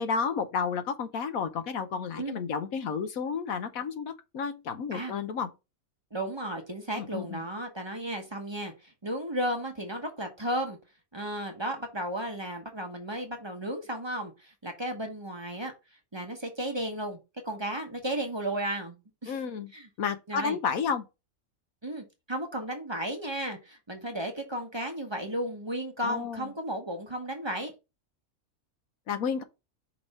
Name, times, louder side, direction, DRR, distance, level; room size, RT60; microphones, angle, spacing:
voice 1, 0.0-5.5 7.0-7.4 19.3-19.7 20.0-21.0 26.0-26.5 29.1-29.4, left 6 dB, 75° left, 1.3 m, -31 dB
voice 2, 6.1-10.8 11.1-15.7 16.1-17.2 17.4-19.4 19.7-19.9 20.3-20.6 21.8-27.7, right 1 dB, 20° right, 1.0 m, -34 dB
5.3 x 3.5 x 5.3 m
omnidirectional pair, 1.5 m